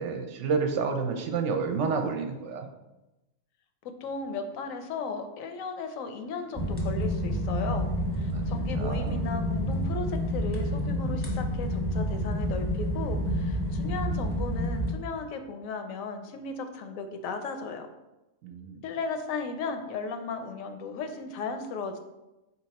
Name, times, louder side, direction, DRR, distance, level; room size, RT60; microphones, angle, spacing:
voice 1, 0.0-2.7 8.3-8.4 8.7-9.2 18.4-18.8, right 5 dB, 70° right, 5 dB, 0.8 m, -30 dB
voice 2, 4.0-7.9 8.1-17.9 18.8-22.0, left 4 dB, 80° left, 7 dB, 1.0 m, -36 dB
sound 1, 6.5-14.9, equal, 15° left, 0.6 m, -29 dB
4.5 x 2.9 x 4.0 m, 1.0 s
omnidirectional pair, 1.4 m